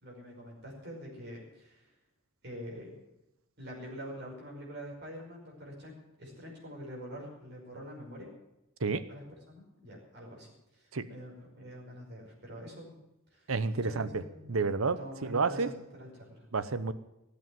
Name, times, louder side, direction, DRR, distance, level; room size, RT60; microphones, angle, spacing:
voice 1, 0.0-1.9 2.4-2.9 3.6-5.9 6.2-8.3 9.1-12.9 13.3-13.5 13.8-14.6 15.0-16.4, equal, 55° right, -2 dB, 5.3 m, -45 dB
voice 2, 13.5-14.2 14.5-15.7 16.5-16.9, right 4 dB, 85° right, 14 dB, 0.9 m, -30 dB
18.0 x 8.5 x 7.7 m, 0.90 s
head